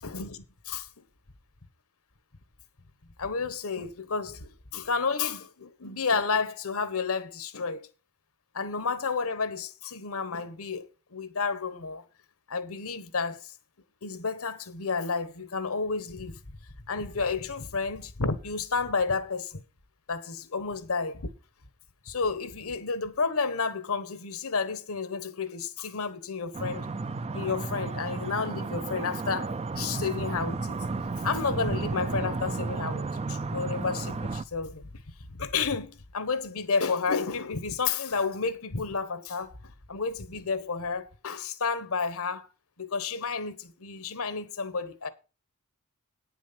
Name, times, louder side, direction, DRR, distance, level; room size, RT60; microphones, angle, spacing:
voice 1, 0.0-0.9 3.2-7.9 8.5-12.0 12.5-13.5 14.0-16.4 16.9-19.6 20.1-21.3 22.0-26.9 27.3-30.8 31.2-34.9 35.3-39.5 39.9-42.5 42.8-45.1, left 4 dB, 65° left, 1.3 m, -31 dB
sound 1, 26.5-34.4, right 3 dB, 30° right, 0.5 m, -33 dB
9.6 x 7.4 x 5.8 m
head